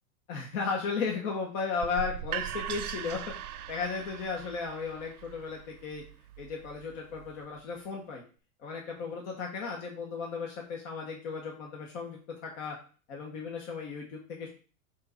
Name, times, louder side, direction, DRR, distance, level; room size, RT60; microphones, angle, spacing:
voice 1, 0.3-3.4 3.7-6.0 6.4-8.2 8.6-12.8 13.1-14.5, left 5 dB, 60° left, -1 dB, 2.0 m, -35 dB
sound 1, 1.8-7.6, right 10 dB, 85° right, 0.6 m, -40 dB
7.7 x 3.1 x 5.3 m, 0.37 s
hypercardioid pair, 100°, 43 cm